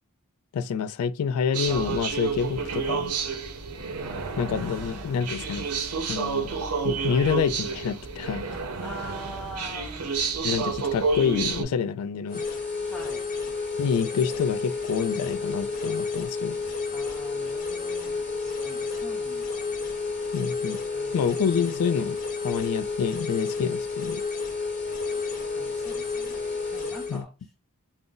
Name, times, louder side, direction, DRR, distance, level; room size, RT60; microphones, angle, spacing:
voice 1, 0.5-3.1 4.4-5.7 6.1-6.5 6.8-8.5 10.4-12.4 13.8-16.6 20.3-20.8 21.1-22.2 22.4-24.2 27.1-27.2, left 6 dB, 70° left, 0.3 m, -27 dB
sound 1, 1.5-11.6, right 5 dB, 85° right, 0.6 m, -30 dB
voice 2, 8.8-10.1 12.9-13.2 16.9-19.7 20.9-21.4 25.5-26.4 26.7-27.3, right 1 dB, ahead, 0.5 m, -43 dB
sound 2, 12.3-27.2, left 4 dB, 35° left, 0.8 m, -31 dB
2.5 x 2.0 x 3.7 m
head